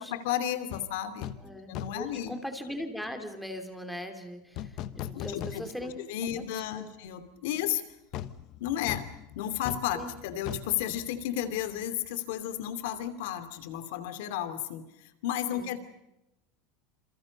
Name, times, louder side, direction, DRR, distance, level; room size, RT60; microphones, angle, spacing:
voice 1, 0.0-1.3 1.7-2.3 5.1-7.8 8.6-9.1 9.4-14.8 15.2-15.8, left 11 dB, 75° left, 11 dB, 2.7 m, -33 dB
sound 1, 0.7-0.9 1.2-1.5 1.7-2.2 4.6-6.0 6.4-6.5 8.1-11.8 12.0-12.2, left 12 dB, 45° left, 1.2 m, -39 dB
voice 2, 1.4-1.7 1.9-6.9 8.8-8.9 9.9-10.1 15.5-15.8, equal, ahead, 5 dB, 3.0 m, -40 dB
28.5 x 28.0 x 5.4 m, 0.89 s
supercardioid pair, 160°, 0 cm